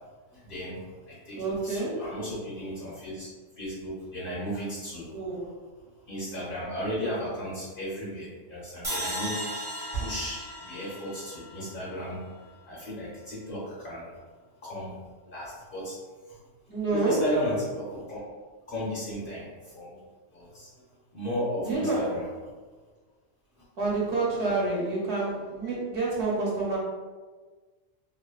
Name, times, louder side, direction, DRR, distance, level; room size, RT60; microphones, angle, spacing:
voice 1, 0.3-3.3 3.6-5.2 6.1-9.4 9.9-12.2 12.7-14.1 14.6-14.9 15.2-16.0 16.3-16.4 16.9-18.2 18.7-20.0 20.3-20.7 21.1-22.2, equal, 45° left, -8 dB, 1.5 m, -34 dB
voice 2, 1.4-2.1 5.1-5.5 16.7-17.2 21.7-22.2 23.8-26.8, right 3 dB, 65° right, -5 dB, 1.0 m, -28 dB
sound 1, 8.8-12.1, equal, 15° right, 0.9 m, -36 dB
3.2 x 2.4 x 2.3 m, 1.4 s
omnidirectional pair, 1.3 m